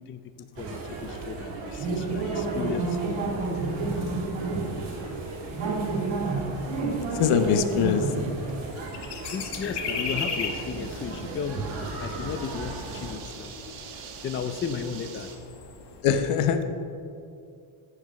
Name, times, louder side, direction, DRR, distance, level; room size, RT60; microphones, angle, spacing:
voice 1, 0.0-3.7 9.2-15.3, left 6 dB, 25° left, 9 dB, 0.4 m, -36 dB
sound 1, 0.6-13.1, right 3 dB, 60° right, 2.5 m, -31 dB
sound 2, 0.9-16.0, left 5 dB, 55° left, 1.3 m, -41 dB
voice 2, 7.2-8.0 16.0-16.6, left 8 dB, 90° left, 8 dB, 1.0 m, -22 dB
sound 3, 10.0-15.4, right 7 dB, 85° right, 1.6 m, -45 dB
14.5 x 6.1 x 4.9 m, 2.5 s
cardioid pair, 140°, 49 cm